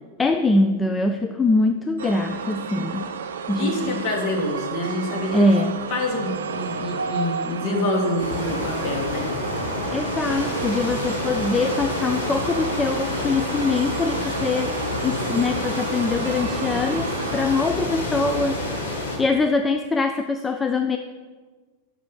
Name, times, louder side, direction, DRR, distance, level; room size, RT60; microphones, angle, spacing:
voice 1, 0.2-3.0 3.5-4.0 5.3-5.8 9.9-14.7 15.0-18.8 19.2-21.0, left 3 dB, 15° left, 6 dB, 0.4 m, -23 dB
sound 1, 2.0-17.7, right 6 dB, 65° right, 0.4 m, -32 dB
voice 2, 3.6-5.5 5.9-9.3, left 2 dB, 40° left, -1 dB, 1.8 m, -26 dB
sound 2, 8.2-19.2, left 2 dB, 75° left, 1.8 m, -28 dB
6.8 x 5.3 x 5.9 m, 1.4 s
figure-of-eight pair, 90°, 0 cm